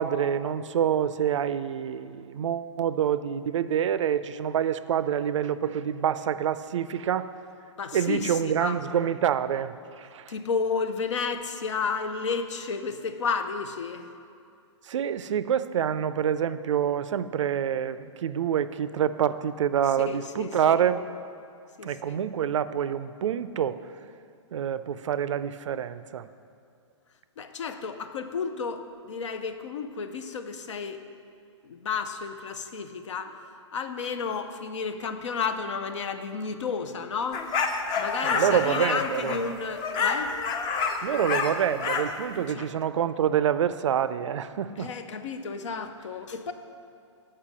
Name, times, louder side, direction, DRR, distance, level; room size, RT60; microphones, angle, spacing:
voice 1, 0.0-7.3 7.9-10.2 14.9-21.0 21.8-23.8 24.5-26.3 38.2-39.4 41.0-44.9, right 9 dB, 80° right, 14 dB, 0.4 m, -27 dB
voice 2, 7.8-8.8 10.3-14.1 20.0-20.8 21.8-22.2 27.4-31.0 31.6-33.4 33.7-37.5 38.0-40.4 42.5-42.7 44.8-46.5, left 5 dB, 75° left, 9 dB, 0.7 m, -32 dB
sound 1, 37.3-42.2, left 5 dB, 25° left, 0.6 m, -28 dB
6.7 x 5.4 x 7.3 m, 2.4 s
hypercardioid pair, 135°, 16 cm